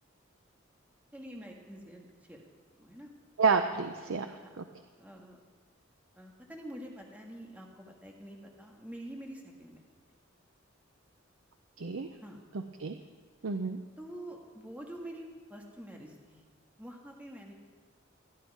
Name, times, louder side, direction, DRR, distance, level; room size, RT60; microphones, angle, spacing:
voice 1, 1.1-2.4 2.7-3.1 4.3-4.5 5.0-5.4 6.1-9.8 12.2-12.4 14.0-16.4 16.8-17.5, right 1 dB, 10° right, 0 dB, 1.6 m, -46 dB
voice 2, 3.4-4.3 4.6-4.7 11.8-12.1 12.8-13.0 13.4-13.8, right 5 dB, 85° right, 7 dB, 0.6 m, -29 dB
16.5 x 10.5 x 4.7 m, 1.5 s
head